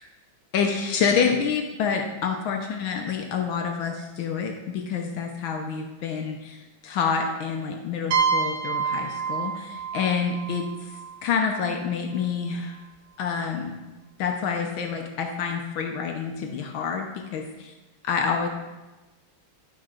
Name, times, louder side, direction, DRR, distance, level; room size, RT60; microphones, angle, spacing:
voice 1, 0.5-10.9 11.2-12.8 13.2-13.8 14.2-17.7 18.0-18.5, left 6 dB, 80° left, 3 dB, 1.5 m, -27 dB
sound 1, 8.1-11.7, right 6 dB, 70° right, 0.7 m, -28 dB
11.5 x 4.9 x 4.3 m, 1.1 s
omnidirectional pair, 2.2 m